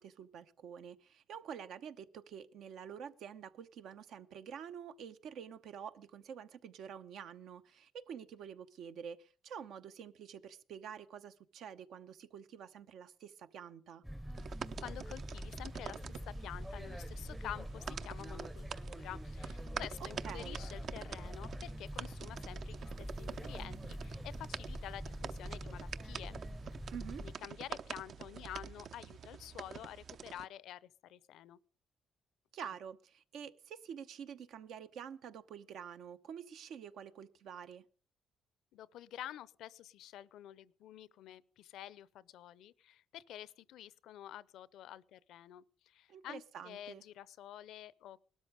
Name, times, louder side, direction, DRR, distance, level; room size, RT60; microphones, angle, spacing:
voice 1, 0.0-14.0 20.2-20.6 26.9-27.2 32.5-37.8 46.1-47.0, right 8 dB, 80° right, 0.9 m, -48 dB
sound 1, 14.0-27.3, equal, 5° right, 0.6 m, -44 dB
sound 2, 14.4-30.5, right 7 dB, 60° right, 0.7 m, -47 dB
voice 2, 14.8-26.4 27.2-31.6 32.6-32.7 38.7-48.2, left 12 dB, 85° left, 0.6 m, -49 dB
19.0 x 13.0 x 5.0 m
cardioid pair, 90°, 0 cm